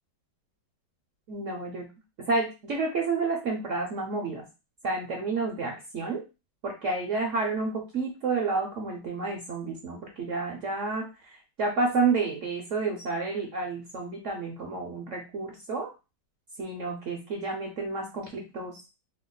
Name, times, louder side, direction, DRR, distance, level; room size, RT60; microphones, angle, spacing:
voice 1, 1.3-1.9 2.3-4.4 4.8-6.2 6.6-15.9 16.6-18.8, right 3 dB, 65° right, 1 dB, 0.8 m, -30 dB
2.9 x 2.3 x 3.8 m, 0.29 s
omnidirectional pair, 1.9 m